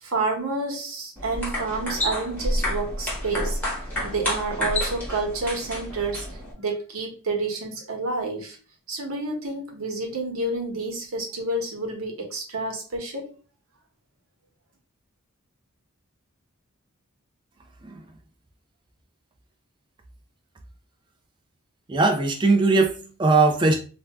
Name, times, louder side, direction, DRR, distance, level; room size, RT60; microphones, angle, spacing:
voice 1, 0.0-3.6 4.0-8.6 8.9-13.3, right 3 dB, 75° right, 1.0 m, -29 dB
sound 1, 1.2-6.5, left 1 dB, 10° left, 0.9 m, -29 dB
voice 2, 21.9-23.8, right 3 dB, 20° right, 0.3 m, -20 dB
2.5 x 2.2 x 3.4 m
head